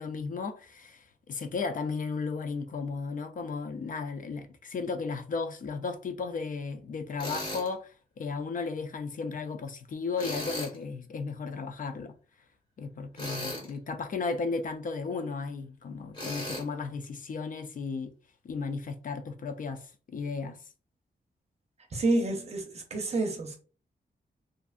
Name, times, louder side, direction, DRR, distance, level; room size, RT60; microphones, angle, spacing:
voice 1, 0.0-12.1 12.8-18.1 18.4-20.6, left 4 dB, 50° left, 0.4 m, -35 dB
Tools, 7.2-7.7 10.2-10.8 13.2-13.7 16.1-16.6, left 1 dB, 30° left, 1.3 m, -36 dB
voice 2, 21.9-23.6, right 2 dB, 40° right, 0.6 m, -29 dB
2.6 x 2.3 x 2.4 m
wide cardioid pair, 130°, 17 cm